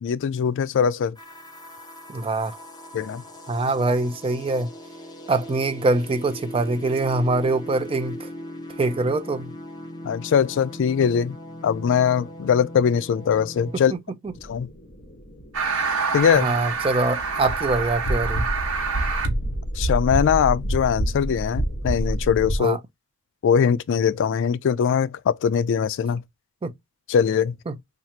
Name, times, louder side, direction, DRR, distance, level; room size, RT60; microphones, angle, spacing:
voice 1, 0.0-1.2 2.9-3.2 10.0-11.4 11.6-13.9 14.5-14.7 16.1-16.5 19.8-22.8 23.4-26.2 27.1-27.6, left 7 dB, 60° left, 0.3 m, -21 dB
sound 1, 1.1-14.0, equal, 20° left, 0.7 m, -39 dB
voice 2, 2.1-2.6 3.5-4.7 5.3-8.3 8.8-9.5 13.9-14.0 14.2-14.3 16.3-18.5 22.6-22.8 26.6-26.7 27.7-27.8, right 2 dB, 25° right, 0.4 m, -24 dB
sound 2, 14.3-22.6, right 1 dB, 35° left, 1.1 m, -28 dB
sound 3, 15.5-19.3, right 5 dB, 70° right, 1.2 m, -27 dB
2.9 x 2.4 x 4.2 m
head